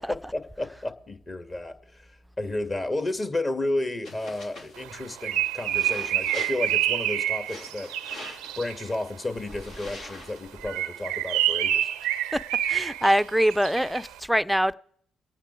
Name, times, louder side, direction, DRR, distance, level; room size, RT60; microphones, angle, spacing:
voice 1, 0.1-7.9 8.6-11.9, left 2 dB, 35° left, 2.1 m, -32 dB
sound 1, 4.0-10.6, left 2 dB, 70° left, 3.4 m, -45 dB
Bird, 4.8-8.9 10.6-14.1, right 12 dB, 80° right, 0.5 m, -28 dB
voice 2, 12.7-14.7, equal, 5° right, 0.6 m, -23 dB
25.0 x 9.0 x 4.7 m
hypercardioid pair, 50°, 0 cm